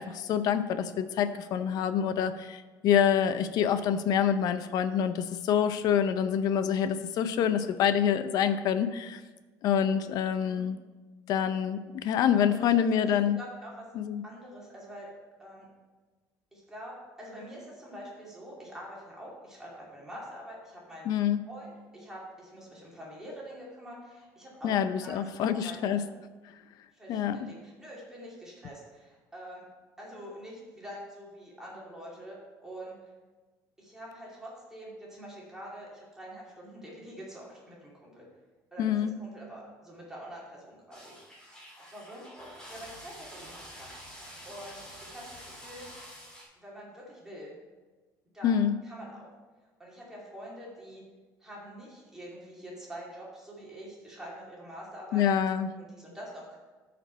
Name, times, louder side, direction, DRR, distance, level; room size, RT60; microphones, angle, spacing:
voice 1, 0.0-9.2 9.6-10.8 11.3-13.4 13.9-14.2 21.1-21.4 24.6-26.0 27.1-27.5 38.8-39.1 48.4-48.7 55.1-55.7, left 8 dB, 55° left, 11 dB, 0.6 m, -26 dB
voice 2, 13.1-13.9 14.2-15.1 15.4-15.7 16.5-21.1 21.4-24.8 25.0-26.0 26.9-29.7 30.0-33.0 33.8-38.3 38.7-41.6 41.9-42.3 42.7-45.8 46.6-47.6 48.3-49.3 49.8-51.0 51.4-55.5 55.7-56.6, equal, 5° right, -5 dB, 2.6 m, -45 dB
sound 1, 40.9-46.4, equal, 10° left, 2.4 m, -47 dB
13.5 x 5.2 x 4.5 m, 1.3 s
cardioid pair, 160°, 8 cm